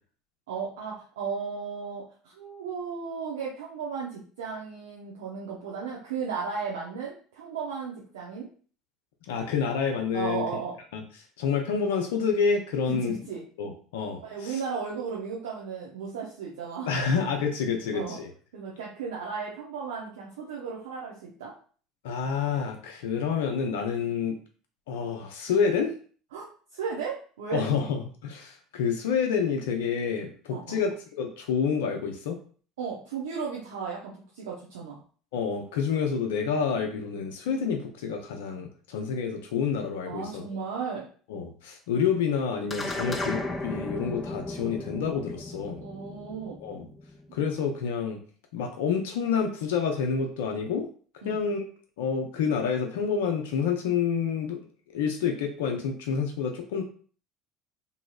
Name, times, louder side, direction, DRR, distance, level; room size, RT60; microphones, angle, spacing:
voice 1, 0.5-8.5 10.1-10.8 12.9-13.4 14.2-16.9 17.2-17.3 17.9-18.2 18.5-21.5 26.3-26.5 26.7-27.6 30.5-30.8 32.8-35.0 40.1-41.0 45.8-46.6 51.2-51.4, right 6 dB, 75° right, -3 dB, 0.6 m, -35 dB
voice 2, 9.3-10.4 10.9-11.0 11.4-13.2 13.6-14.6 16.9-18.3 22.0-24.4 24.9-25.9 27.5-30.9 31.2-32.4 35.3-40.5 41.3-45.8 46.6-46.9 47.3-48.2 48.5-50.9 51.2-51.7 52.0-54.6 54.9-56.8, left 6 dB, 75° left, 3 dB, 0.5 m, -28 dB
sound 1, 42.7-47.3, left 2 dB, 20° left, 0.5 m, -35 dB
3.0 x 2.6 x 2.3 m, 0.42 s
hypercardioid pair, 70°, 0 cm